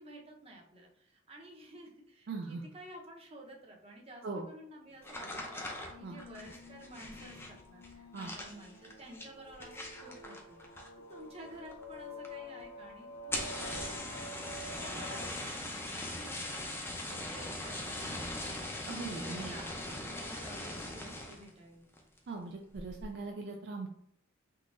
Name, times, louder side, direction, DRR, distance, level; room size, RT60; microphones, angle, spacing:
voice 1, 0.0-10.6 11.1-18.5 19.1-21.9, right 1 dB, 30° right, -1 dB, 0.8 m, -52 dB
voice 2, 2.3-2.6 4.2-4.4 6.0-6.2 8.1-8.3 18.9-19.6 22.3-23.9, right 3 dB, 55° right, 2 dB, 0.4 m, -40 dB
sound 1, 4.9-15.3, left 1 dB, 75° left, 0.6 m, -50 dB
sound 2, 5.0-11.1 11.4-11.9 12.2-12.3 12.6-12.7 13.2-21.5 21.9-22.3 22.7-23.1, left 1 dB, 10° left, 0.5 m, -41 dB
3.7 x 2.8 x 2.5 m, 0.72 s
head